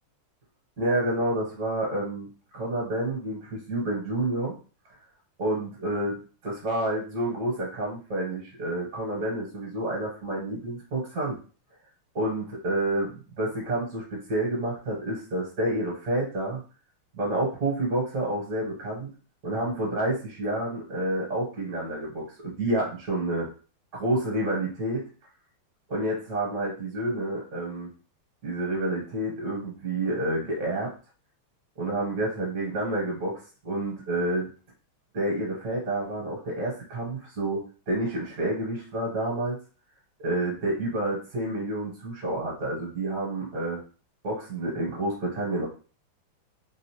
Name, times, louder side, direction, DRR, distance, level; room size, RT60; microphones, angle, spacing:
voice 1, 0.8-2.3 2.5-4.5 5.4-6.1 6.4-11.4 12.1-16.6 17.1-19.1 19.4-23.5 23.9-25.0 25.9-27.9 28.4-30.9 31.8-34.5 35.1-39.6 40.2-43.8 44.2-45.7, right 1 dB, 55° right, -2 dB, 1.5 m, -29 dB
3.6 x 2.5 x 2.9 m, 0.36 s
omnidirectional pair, 2.4 m